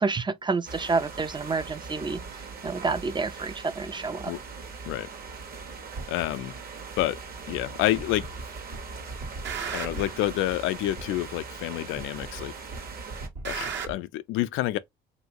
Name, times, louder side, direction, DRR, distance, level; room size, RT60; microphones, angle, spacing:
voice 1, 0.0-4.3, right 4 dB, 25° right, 0.5 m, -29 dB
sound 1, 0.7-13.3, right 4 dB, 50° right, 1.2 m, -41 dB
sound 2, 6.0-6.1 7.0-7.1 8.0-8.4 8.7-10.2 11.0-11.1 12.0-12.4 12.7-13.9, right 5 dB, 65° right, 1.3 m, -35 dB
voice 2, 6.1-6.5 7.0-7.2 7.5-8.3 9.7-12.5 13.4-14.8, left 15 dB, 80° left, 0.4 m, -28 dB
3.0 x 2.7 x 2.8 m
supercardioid pair, 75°, 20 cm